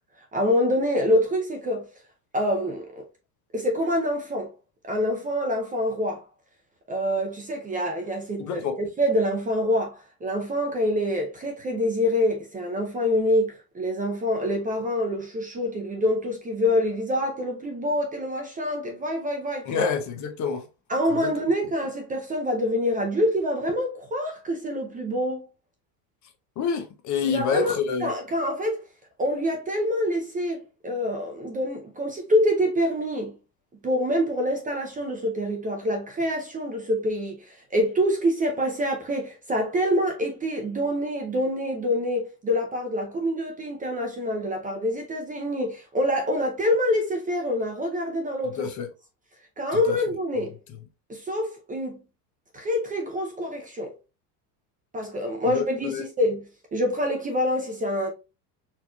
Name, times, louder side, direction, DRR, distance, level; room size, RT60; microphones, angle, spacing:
voice 1, 0.3-1.8 2.3-3.0 3.5-4.5 4.9-6.2 6.9-19.9 20.9-25.5 27.2-27.7 28.0-28.8 29.2-33.3 33.8-48.7 49.6-50.5 51.1-52.0 52.5-53.9 54.9-58.1, left 1 dB, 20° right, 0.5 m, -26 dB
voice 2, 8.4-8.8 19.7-20.7 21.1-21.3 26.6-28.1 48.6-48.9 49.7-50.0 55.5-56.0, left 6 dB, 40° left, 0.6 m, -27 dB
4.3 x 2.9 x 2.3 m
cardioid pair, 140°, 48 cm